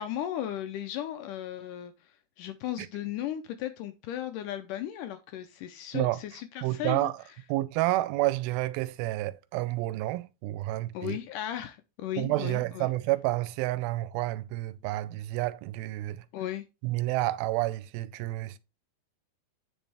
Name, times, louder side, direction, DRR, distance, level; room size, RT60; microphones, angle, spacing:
voice 1, 0.0-7.1 10.9-12.9 16.3-16.7, left 11 dB, 80° left, 1.9 m, -36 dB
voice 2, 6.6-7.1 7.5-11.2 12.2-16.2 16.8-18.6, right 17 dB, 85° right, 2.4 m, -29 dB
8.6 x 5.2 x 3.4 m
omnidirectional pair, 4.2 m